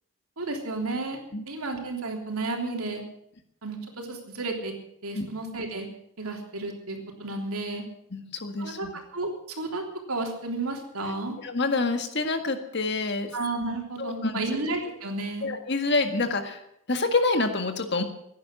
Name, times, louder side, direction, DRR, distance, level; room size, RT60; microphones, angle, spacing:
voice 1, 0.4-1.2 1.5-3.0 3.6-4.7 5.0-5.9 6.2-7.8 8.6-8.9 9.1-11.4 13.3-15.5, right 2 dB, 85° right, 2 dB, 3.5 m, -32 dB
voice 2, 8.1-8.9 11.4-13.3 14.0-14.5 15.4-16.6 16.9-18.0, left 3 dB, 50° left, 7 dB, 1.8 m, -27 dB
16.5 x 10.5 x 7.8 m, 0.73 s
head